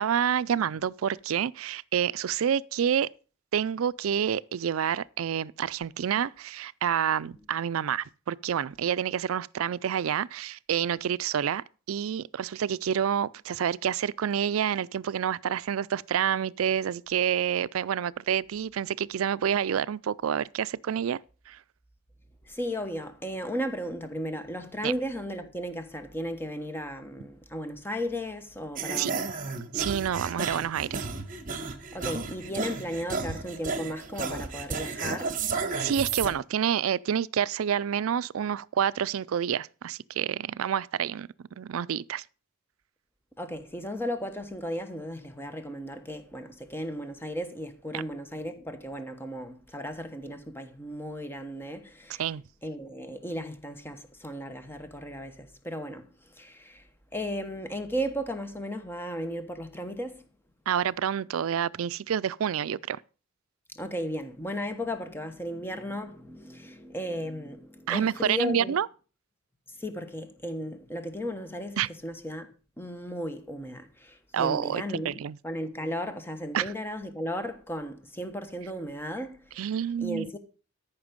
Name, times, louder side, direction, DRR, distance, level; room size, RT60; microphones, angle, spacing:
voice 1, 0.0-3.1 3.5-21.2 21.5-21.6 24.8-24.9 29.0-29.1 29.7-31.1 35.8-41.3 41.6-42.2 47.9-48.0 52.2-52.4 60.7-63.0 67.9-68.9 71.8-71.9 74.3-75.4 76.5-76.7 79.6-80.3, right 8 dB, 80° right, 0.4 m, -28 dB
voice 2, 22.4-29.3 31.9-35.4 43.4-52.3 52.6-56.1 56.4-56.8 57.1-60.2 63.7-68.8 69.8-72.5 72.8-75.2 75.4-79.7 80.0-80.4, equal, 10° left, 1.2 m, -35 dB
sound 1, 28.8-36.3, right 4 dB, 40° right, 1.2 m, -33 dB
13.5 x 5.9 x 5.2 m
head